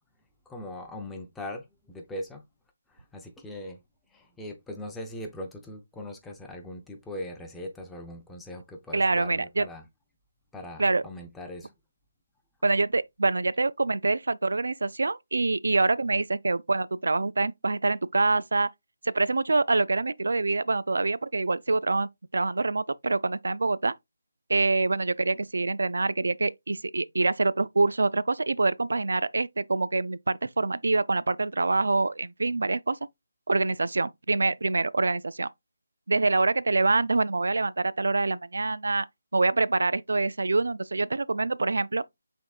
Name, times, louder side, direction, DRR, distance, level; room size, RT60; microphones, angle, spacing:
voice 1, 0.5-2.4 2.9-3.8 4.1-9.9 10.5-11.7, left 1 dB, 5° left, 0.6 m, -40 dB
voice 2, 8.9-9.7 10.8-11.0 12.6-18.7 19.0-23.9 24.5-33.0 33.5-35.5 36.1-39.1 39.3-42.0, right 3 dB, 75° right, 0.3 m, -25 dB
6.0 x 3.6 x 2.3 m
figure-of-eight pair, 160°, 0 cm